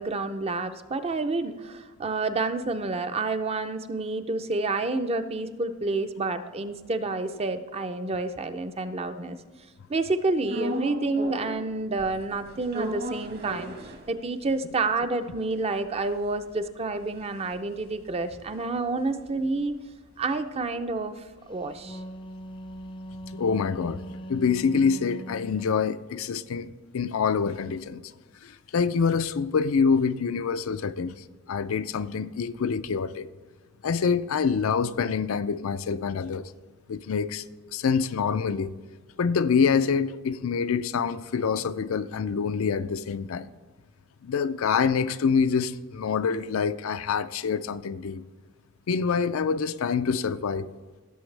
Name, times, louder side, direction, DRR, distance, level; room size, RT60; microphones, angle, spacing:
voice 1, 0.0-9.4 9.9-13.7 14.1-19.7 20.2-22.0, right 3 dB, 30° right, 0.5 m, -29 dB
sound 1, 10.5-11.7 12.0-14.6 15.0-15.1 15.2-19.7 20.1-24.1, equal, 50° right, 1.3 m, -38 dB
Wind instrument woodwind instrument, 21.6-25.8, right 1 dB, 25° left, 0.5 m, -40 dB
voice 2, 23.3-24.0 24.3-28.0 28.4-31.1 31.5-33.3 33.8-36.5 36.9-38.7 39.2-43.5 44.2-48.2 48.9-50.7, left 6 dB, 75° left, 0.4 m, -26 dB
16.5 x 7.1 x 3.3 m
head